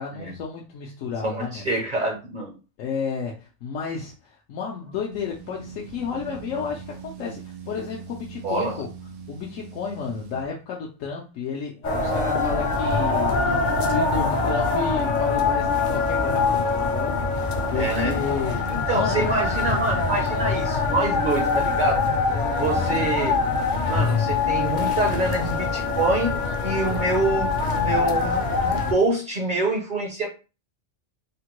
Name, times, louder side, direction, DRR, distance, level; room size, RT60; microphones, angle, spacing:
voice 1, 0.0-1.7 2.8-8.9 9.3-18.6 18.9-19.3 22.7-23.0, left 6 dB, 85° left, 1.0 m, -32 dB
voice 2, 1.2-2.6 8.4-8.8 17.7-18.1 18.7-22.1 22.5-23.4 23.9-26.3 26.6-30.3, right 2 dB, 50° right, 0.6 m, -26 dB
sound 1, 5.1-10.5, right 5 dB, 80° right, 1.0 m, -41 dB
sound 2, 11.8-28.9, left 4 dB, 55° left, 0.5 m, -24 dB
3.5 x 2.1 x 2.9 m
omnidirectional pair, 1.3 m